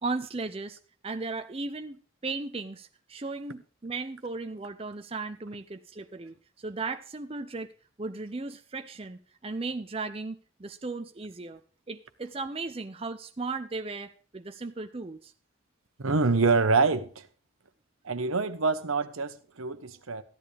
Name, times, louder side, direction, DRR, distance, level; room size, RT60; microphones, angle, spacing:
voice 1, 0.0-7.7 8.0-11.6 11.9-15.3, right 3 dB, 25° right, 7 dB, 0.5 m, -36 dB
voice 2, 16.0-17.3 18.0-20.2, right 4 dB, 80° right, 11 dB, 1.0 m, -26 dB
14.0 x 11.0 x 3.4 m, 0.40 s
head